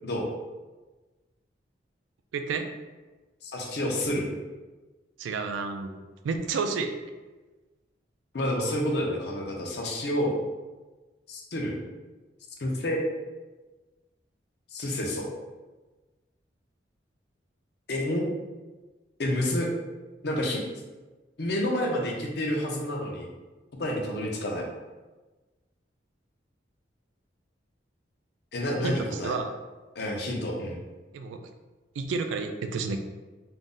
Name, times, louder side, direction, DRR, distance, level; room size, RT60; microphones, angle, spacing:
voice 1, 2.3-2.7 5.2-6.0 6.2-6.9 28.8-28.9 29.2-29.6 31.1-31.4 32.0-33.0, right 4 dB, 90° right, 7 dB, 0.3 m, -30 dB
voice 2, 3.4-4.3 8.3-10.3 11.3-11.8 12.6-13.0 14.7-15.3 17.9-18.3 19.2-19.7 20.2-20.6 21.4-23.3 23.8-24.7 28.5-29.4 30.0-30.8, left 1 dB, 60° left, 0 dB, 0.5 m, -29 dB
2.5 x 2.0 x 3.6 m, 1.2 s
head